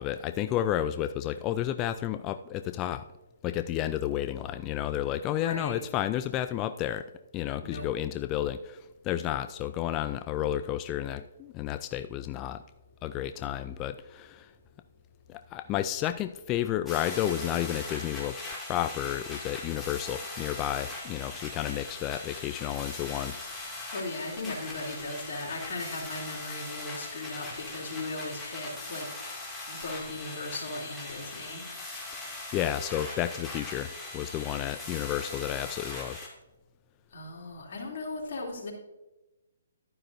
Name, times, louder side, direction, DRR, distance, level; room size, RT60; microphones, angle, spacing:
voice 1, 0.0-3.0 3.4-7.1 7.3-12.6 13.0-14.5 15.3-23.4 32.5-36.2, left 12 dB, 25° left, 10 dB, 0.3 m, -31 dB
voice 2, 5.4-5.8 7.6-7.9 23.9-29.1 29.7-31.6 37.1-38.7, left 2 dB, 55° left, -2 dB, 2.9 m, -37 dB
sound 1, 16.9-36.3, left 2 dB, 10° left, 2.3 m, -40 dB
11.0 x 9.7 x 2.6 m, 1.0 s
figure-of-eight pair, 140°, 0 cm